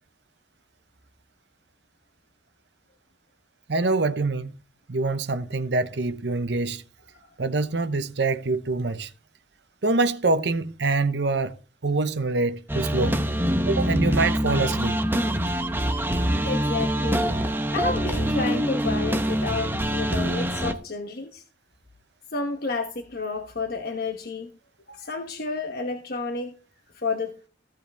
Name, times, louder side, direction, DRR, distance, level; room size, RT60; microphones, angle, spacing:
voice 1, 3.7-4.6 4.9-6.8 7.4-9.1 9.8-13.2 13.7-15.0, right 3 dB, 65° right, 0.8 m, -25 dB
sound 1, 12.7-20.7, equal, 10° right, 0.8 m, -25 dB
voice 2, 16.1-17.3 17.7-21.4 22.3-24.5 24.9-26.5 26.9-27.4, left 3 dB, 55° left, 1.1 m, -31 dB
15.0 x 7.7 x 3.5 m
head